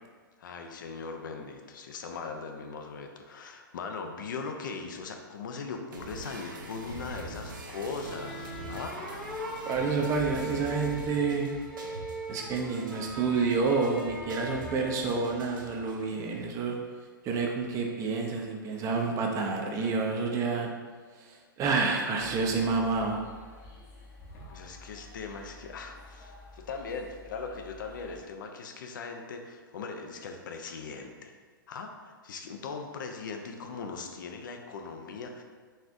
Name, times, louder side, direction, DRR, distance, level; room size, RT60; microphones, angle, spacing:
voice 1, 0.4-8.9 24.5-31.3 31.7-35.4, left 4 dB, 65° left, 4 dB, 0.5 m, -39 dB
sound 1, 5.9-15.9, right 1 dB, 65° right, 0.7 m, -43 dB
sound 2, 8.0-15.5, equal, 5° left, 0.9 m, -41 dB
voice 2, 9.7-11.5 12.3-16.8 17.2-20.7 21.1-23.2, right 4 dB, 30° right, 1 dB, 0.5 m, -29 dB
sound 3, 22.2-28.2, left 2 dB, 45° left, 0.8 m, -50 dB
4.2 x 3.3 x 2.5 m, 1.5 s
figure-of-eight pair, 110°, 12 cm